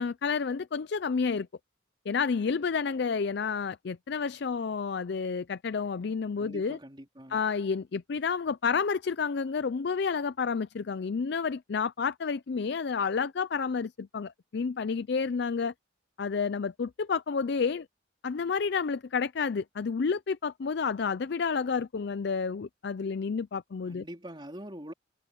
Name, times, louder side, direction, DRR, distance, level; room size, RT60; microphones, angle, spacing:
voice 1, 0.0-1.5 2.1-6.8 7.3-15.7 16.2-17.9 18.2-24.0, left 5 dB, 55° left, 0.4 m, -30 dB
voice 2, 6.4-7.4 23.8-24.9, equal, 25° right, 3.9 m, -44 dB
head